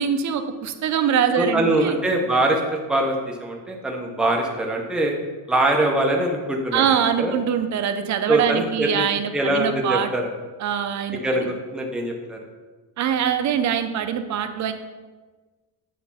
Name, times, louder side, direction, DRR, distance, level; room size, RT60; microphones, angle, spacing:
voice 1, 0.0-2.0 6.7-10.1 10.6-11.5 13.0-14.7, right 8 dB, 50° right, 8 dB, 0.7 m, -23 dB
voice 2, 1.3-5.1 5.5-7.3 8.3-9.0 9.3-10.2 11.2-12.4, right 1 dB, ahead, 0 dB, 0.8 m, -23 dB
8.4 x 3.4 x 5.6 m, 1.3 s
cardioid pair, 140°, 37 cm